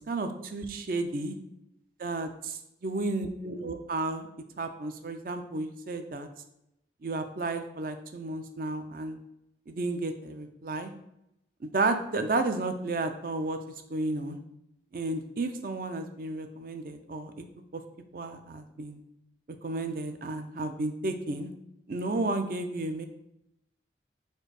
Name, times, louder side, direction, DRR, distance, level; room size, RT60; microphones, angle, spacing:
voice 1, 0.1-1.3 2.0-4.3 4.6-6.3 7.0-9.2 9.7-10.9 11.6-13.6 13.9-14.4 14.9-17.5 17.7-17.8 18.1-19.0 19.6-21.5 21.9-23.1, right 2 dB, 50° right, 7 dB, 0.4 m, -32 dB
4.4 x 2.6 x 4.7 m, 0.83 s
head